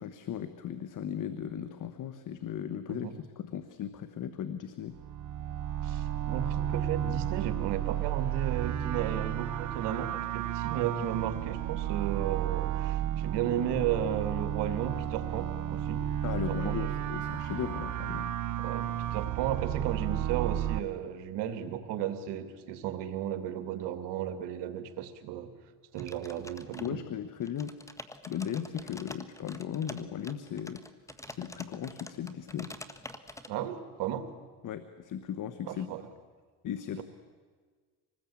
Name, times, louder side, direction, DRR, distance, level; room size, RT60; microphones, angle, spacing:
voice 1, 0.0-3.1 3.4-5.0 16.2-18.3 26.8-27.7 28.3-30.8 31.3-32.7 34.6-35.9 36.6-37.0, left 9 dB, 45° left, 11 dB, 1.4 m, -37 dB
sound 1, 4.9-20.8, right 11 dB, 45° right, 0.9 m, -32 dB
voice 2, 5.8-16.0 16.5-17.0 18.6-25.5 25.9-27.0 33.5-34.3 35.6-36.0, right 10 dB, 70° right, 9 dB, 2.6 m, -34 dB
sound 2, 26.0-27.1 27.4-33.5, left 1 dB, 5° left, 1.5 m, -46 dB
26.0 x 20.0 x 8.7 m, 1.5 s
supercardioid pair, 100°, 42 cm